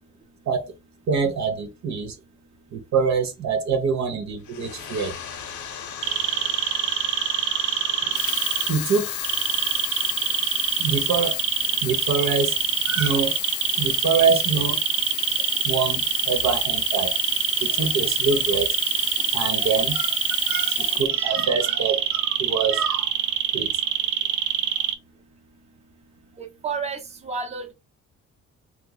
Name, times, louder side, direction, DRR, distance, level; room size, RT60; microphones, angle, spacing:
voice 1, 1.1-2.2 2.7-5.2 8.7-9.1 10.8-11.4 11.8-12.6 12.8-13.4 13.8-14.8 15.6-17.2 17.6-18.8 19.3-20.2 20.5-23.1 23.5-23.7, right 5 dB, 65° right, 0.9 m, -25 dB
sound 1, 4.4-13.0, left 8 dB, 70° left, 0.8 m, -38 dB
sound 2, 6.0-8.7 9.2-24.9, right 9 dB, 90° right, 0.5 m, -24 dB
Sink (filling or washing), 8.0-21.8 22.5-22.6, left 10 dB, 50° left, 0.5 m, -31 dB
voice 2, 26.4-27.7, right 5 dB, 20° right, 0.7 m, -31 dB
3.0 x 2.1 x 3.8 m
cardioid pair, 90°, 30 cm